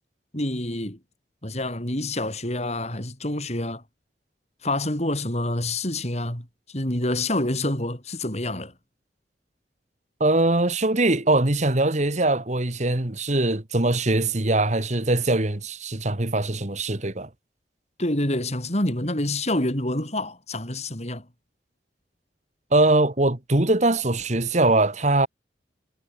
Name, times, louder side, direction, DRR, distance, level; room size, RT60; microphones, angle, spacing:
voice 1, 0.3-1.0 1.4-3.8 4.6-8.7 18.0-21.3, left 1 dB, 40° left, 5.9 m, -27 dB
voice 2, 10.2-17.3 22.7-25.3, right 2 dB, 40° right, 1.8 m, -22 dB
head